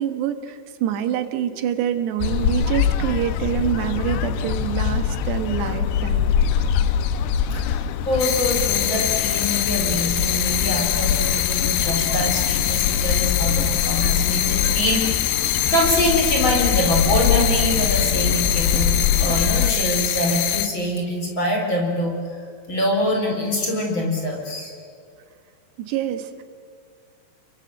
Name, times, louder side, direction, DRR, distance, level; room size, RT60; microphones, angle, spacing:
voice 1, 0.0-6.4 25.8-26.4, right 10 dB, 85° right, 8 dB, 3.5 m, -26 dB
sound 1, 2.2-19.7, left 8 dB, 85° left, 3.0 m, -24 dB
voice 2, 7.5-15.2 15.7-22.1 22.7-24.7, left 1 dB, 30° left, 1 dB, 4.9 m, -24 dB
sound 2, 8.2-20.7, left 12 dB, 70° left, 2.6 m, -24 dB
28.5 x 23.0 x 7.9 m, 2.2 s
omnidirectional pair, 4.8 m